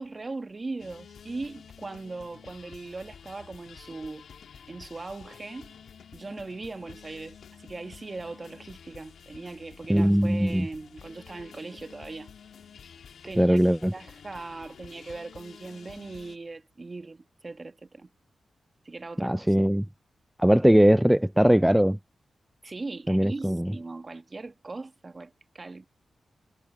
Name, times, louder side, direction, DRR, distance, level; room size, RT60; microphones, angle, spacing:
voice 1, 0.0-4.2 4.7-5.7 6.1-12.3 13.2-18.1 18.8-19.5 22.6-25.9, right 3 dB, 35° right, 1.4 m, -39 dB
sound 1, 0.8-16.4, left 7 dB, 80° left, 2.8 m, -50 dB
voice 2, 9.9-10.7 13.4-13.9 19.2-19.9 20.4-22.0 23.1-23.7, equal, 5° right, 0.4 m, -20 dB
cardioid pair, 80°, 0 cm